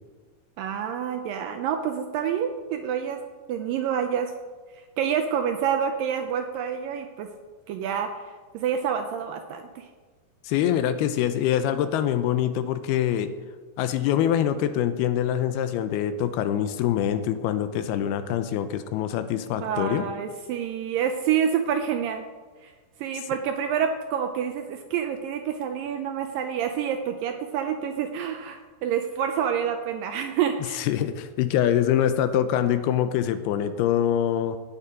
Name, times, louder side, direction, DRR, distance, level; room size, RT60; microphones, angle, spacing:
voice 1, 0.6-3.2 3.5-4.3 4.7-7.3 7.7-8.2 8.5-9.9 19.6-22.3 22.6-22.7 23.0-30.9, right 8 dB, 80° right, 6 dB, 2.1 m, -28 dB
voice 2, 10.4-13.3 13.8-20.1 30.8-34.6, left 10 dB, 85° left, 10 dB, 2.6 m, -24 dB
17.5 x 6.7 x 4.9 m, 1.4 s
omnidirectional pair, 4.6 m